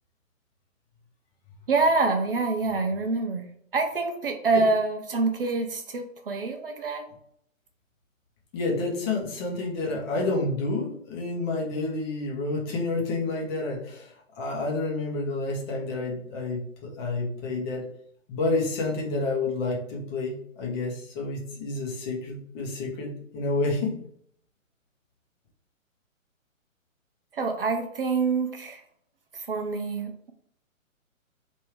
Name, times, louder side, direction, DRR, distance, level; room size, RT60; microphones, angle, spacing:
voice 1, 1.7-3.5 3.7-7.1 27.3-28.8 29.3-30.3, right 3 dB, 45° right, 5 dB, 0.6 m, -26 dB
voice 2, 8.5-17.8 18.3-23.9, left 3 dB, 20° left, -2 dB, 0.8 m, -29 dB
3.4 x 2.6 x 4.5 m, 0.68 s
figure-of-eight pair, 135°, 41 cm